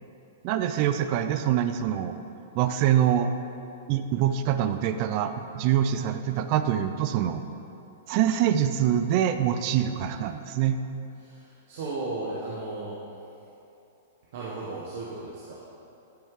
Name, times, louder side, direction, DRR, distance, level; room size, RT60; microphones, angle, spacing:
voice 1, 0.4-2.2 2.5-3.3 3.9-7.4 8.1-10.8, right 10 dB, 45° right, 9 dB, 0.4 m, -25 dB
voice 2, 11.2-13.1 14.3-15.7, right 2 dB, 60° right, -5 dB, 1.0 m, -35 dB
10.5 x 4.5 x 3.7 m, 2.8 s
hypercardioid pair, 140°, 0 cm